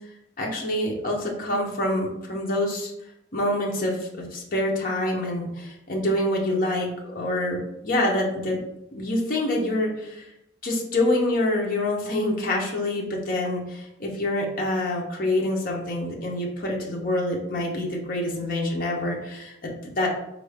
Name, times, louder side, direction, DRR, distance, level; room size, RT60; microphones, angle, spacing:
voice 1, 0.4-2.9 3.3-8.6 8.9-10.3 10.6-20.1, left 1 dB, 45° left, -2 dB, 0.7 m, -26 dB
4.5 x 2.5 x 3.4 m, 0.85 s
head